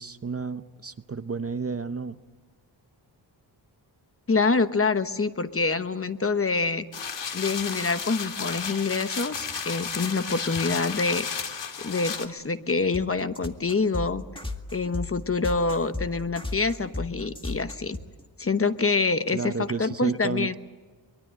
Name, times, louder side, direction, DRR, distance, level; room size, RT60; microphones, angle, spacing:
voice 1, 0.0-2.2 19.3-20.6, right 4 dB, 30° right, 11 dB, 0.8 m, -32 dB
voice 2, 4.3-6.9 7.3-11.5 11.8-14.2 14.7-18.0 18.4-20.5, left 4 dB, 30° left, 11 dB, 1.1 m, -26 dB
sound 1, 6.9-12.3, left 6 dB, 70° left, 2.4 m, -33 dB
sound 2, 12.9-18.2, left 2 dB, 10° left, 2.0 m, -34 dB
24.0 x 22.5 x 7.7 m, 1.4 s
wide cardioid pair, 110°, 44 cm